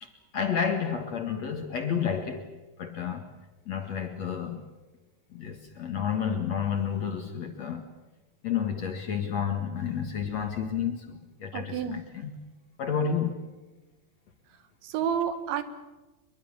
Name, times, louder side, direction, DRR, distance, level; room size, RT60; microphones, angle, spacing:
voice 1, 0.0-2.5 2.8-3.3 3.7-4.7 5.3-7.9 8.4-12.3 12.8-13.4, left 7 dB, 50° left, 2.2 m, -30 dB
voice 2, 11.5-12.0 14.8-15.6, right 8 dB, 85° right, 3.9 m, -29 dB
25.0 x 23.0 x 7.4 m
omnidirectional pair, 5.1 m